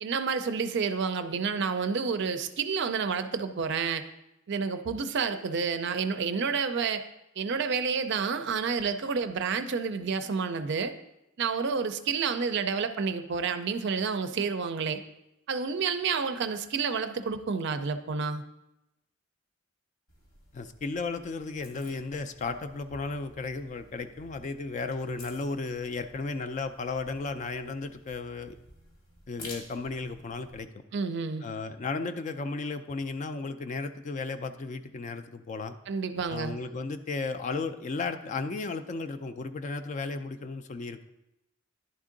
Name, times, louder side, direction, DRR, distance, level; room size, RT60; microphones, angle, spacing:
voice 1, 0.0-4.0 4.5-7.0 7.4-10.9 11.4-15.0 15.5-18.4 30.9-31.4 35.9-36.6, right 5 dB, 60° right, 9 dB, 0.4 m, -29 dB
sound 1, 20.1-30.6, left 1 dB, 90° left, 1.8 m, -52 dB
voice 2, 20.5-28.6 29.3-30.8 31.4-35.7 36.3-41.0, left 3 dB, 35° left, 9 dB, 0.3 m, -34 dB
11.0 x 3.6 x 3.8 m, 0.89 s
head